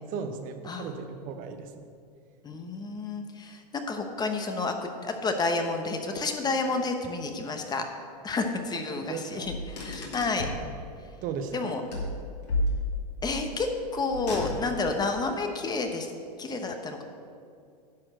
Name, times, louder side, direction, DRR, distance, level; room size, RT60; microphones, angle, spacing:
voice 1, 0.1-1.9 8.9-9.5 11.2-11.8, right 6 dB, 40° right, 7 dB, 0.8 m, -36 dB
voice 2, 2.4-7.9 8.2-10.5 11.5-11.8 13.2-16.1 16.4-17.0, left 3 dB, 20° left, 5 dB, 0.9 m, -30 dB
Car, 9.4-10.7 11.9-13.2 14.1-14.9, left 1 dB, 75° left, 2.7 m, -32 dB
10.5 x 4.4 x 7.8 m, 2.4 s
hypercardioid pair, 110°, 21 cm